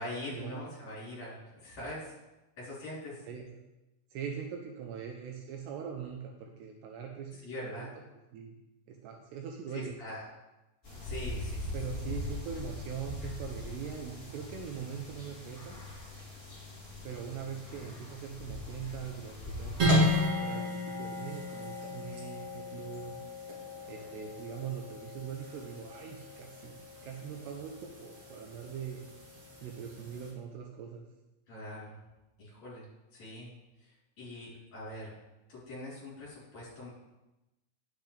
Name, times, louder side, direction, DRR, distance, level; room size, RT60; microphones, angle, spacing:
voice 1, 0.0-2.1 2.6-3.3 7.4-7.9 9.7-10.2 11.0-11.8 31.5-32.0 32.4-33.5 33.8-33.9 34.2-35.2 35.5-36.9, left 1 dB, 40° left, -7 dB, 4.6 m, -42 dB
voice 2, 4.1-7.9 8.3-8.5 8.9-9.9 11.7-15.8 17.0-23.2 23.9-26.8 27.0-29.1 29.6-31.0, right 7 dB, 80° right, 2 dB, 2.7 m, -42 dB
sound 1, 10.8-20.2, left 2 dB, 15° left, 2.4 m, -41 dB
sound 2, 19.8-30.3, left 1 dB, 40° right, 3.1 m, -34 dB
10.5 x 8.3 x 3.4 m, 0.99 s
omnidirectional pair, 5.1 m